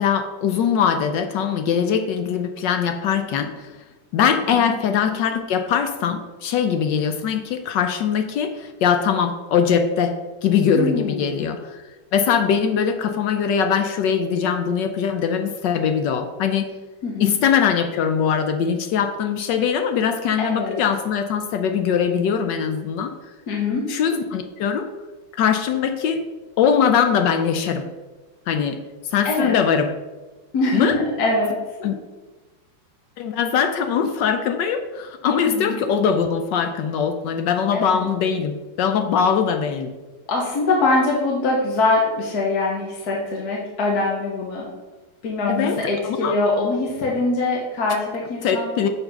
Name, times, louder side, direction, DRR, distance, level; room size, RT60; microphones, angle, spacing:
voice 1, 0.0-3.8 4.1-10.1 10.4-11.8 12.1-16.7 17.2-23.1 23.9-24.9 25.3-26.2 26.6-27.9 28.5-28.8 29.0-29.9 30.7-31.0 31.8-31.9 33.2-39.9 45.5-45.8 46.0-46.4 48.4-48.9, left 7 dB, 70° left, 7 dB, 1.1 m, -21 dB
voice 2, 10.7-11.4 17.0-17.4 20.4-20.8 23.5-24.0 29.2-29.5 30.5-31.9 35.4-35.7 37.7-38.1 40.3-44.7 45.2-48.7, left 2 dB, 55° left, -2 dB, 1.4 m, -23 dB
6.6 x 4.2 x 5.7 m, 1.2 s
omnidirectional pair, 2.3 m